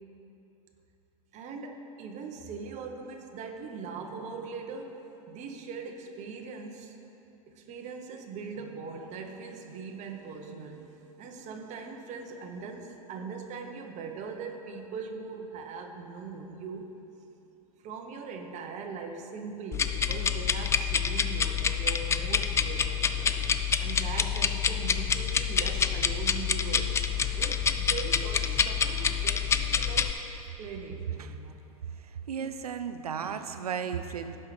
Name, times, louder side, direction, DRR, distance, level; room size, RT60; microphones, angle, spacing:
voice 1, 1.3-7.0 7.5-17.0 17.8-23.2 23.8-26.9 27.4-30.1 30.6-31.6, right 5 dB, 40° right, 3 dB, 1.2 m, -41 dB
sound 1, 19.7-30.1, left 7 dB, 15° left, 0.4 m, -27 dB
voice 2, 31.8-34.4, right 7 dB, 85° right, 9 dB, 0.6 m, -35 dB
16.5 x 5.7 x 3.3 m, 2.9 s
hypercardioid pair, 95°, 19 cm